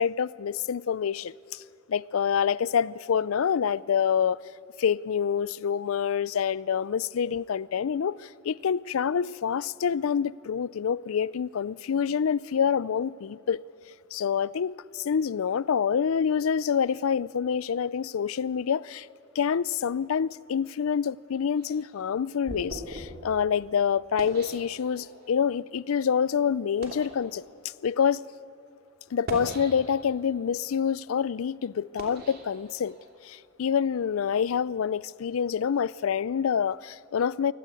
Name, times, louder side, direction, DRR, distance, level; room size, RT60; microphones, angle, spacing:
voice 1, 0.0-1.6 1.9-4.4 4.8-13.6 14.1-19.1 19.4-27.4 27.8-28.2 29.1-33.0 33.2-37.5, left 7 dB, 85° left, 0.4 m, -27 dB
sound 1, 21.6-25.3 26.0-26.1 26.6-27.2 28.0-28.1 29.1-30.2 30.7-33.2, right 1 dB, 50° right, 3.0 m, -41 dB
24.0 x 17.5 x 8.4 m
head